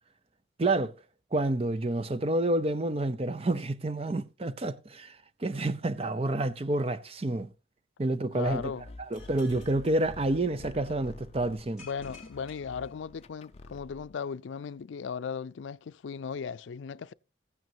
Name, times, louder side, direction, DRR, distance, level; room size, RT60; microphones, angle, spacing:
voice 1, 0.6-0.9 1.3-5.2 5.4-7.5 8.0-8.7 9.1-11.9, right 2 dB, 30° right, 0.5 m, -29 dB
voice 2, 8.3-8.9 11.8-17.1, left 6 dB, 85° left, 0.4 m, -37 dB
sound 1, 8.4-14.2, left 2 dB, 35° left, 0.5 m, -48 dB
sound 2, 9.1-10.9 11.8-13.6, left 5 dB, 5° right, 2.9 m, -56 dB
15.0 x 9.2 x 2.7 m
head